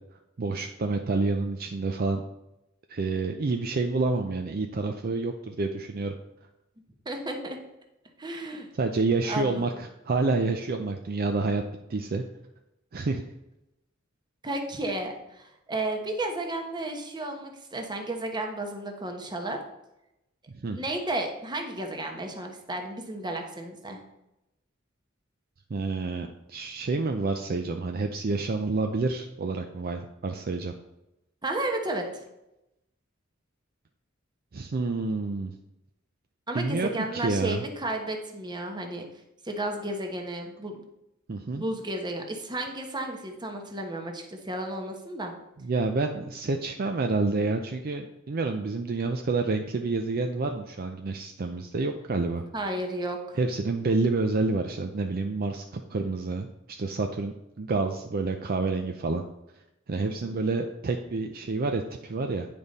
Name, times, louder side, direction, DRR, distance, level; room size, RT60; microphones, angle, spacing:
voice 1, 0.4-2.2 2.9-6.1 8.7-11.6 11.9-12.2 12.9-13.2 20.5-20.8 25.7-30.7 34.5-35.5 36.5-37.6 41.3-41.7 45.6-52.4 53.4-59.2 59.9-62.5, right 3 dB, 50° right, 5 dB, 0.5 m, -28 dB
voice 2, 7.0-7.6 8.2-8.7 9.3-9.8 14.4-19.6 20.7-24.0 31.4-32.2 36.5-39.1 39.4-40.8 41.6-45.3 52.5-53.4 60.2-60.3, right 1 dB, 20° right, 3 dB, 1.0 m, -33 dB
9.2 x 5.2 x 4.1 m, 0.90 s
head